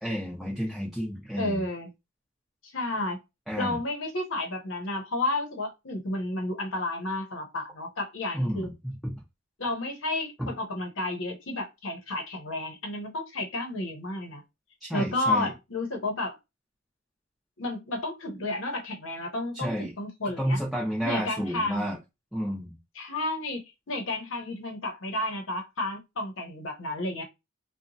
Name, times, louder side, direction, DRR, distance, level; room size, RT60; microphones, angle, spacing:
voice 1, 0.0-1.6 3.5-3.8 8.3-9.2 10.4-10.5 14.8-15.5 19.5-19.9 20.4-22.0 22.3-22.8, equal, ahead, 0.5 m, -31 dB
voice 2, 1.4-1.9 2.7-3.2 3.5-8.7 9.6-14.4 14.9-16.4 17.6-20.6 21.0-21.9 23.0-27.2, left 2 dB, 65° left, 0.8 m, -31 dB
2.8 x 2.2 x 2.6 m
head